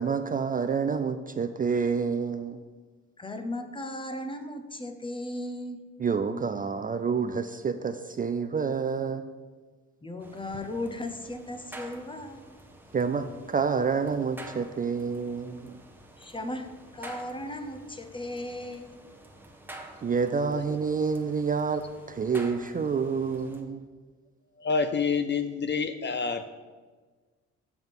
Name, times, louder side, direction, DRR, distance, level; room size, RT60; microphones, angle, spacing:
voice 1, 0.0-2.6 6.0-9.2 12.9-15.8 20.0-23.8, right 5 dB, 30° right, 9 dB, 0.4 m, -28 dB
voice 2, 3.2-5.8 10.0-12.6 16.2-19.0, left 1 dB, 15° left, 8 dB, 0.8 m, -36 dB
sound 1, 10.2-23.6, right 1 dB, 5° right, 1.1 m, -49 dB
voice 3, 24.6-26.5, left 5 dB, 40° left, 9 dB, 0.5 m, -28 dB
7.2 x 5.9 x 5.5 m, 1.4 s
cardioid pair, 90°, 30 cm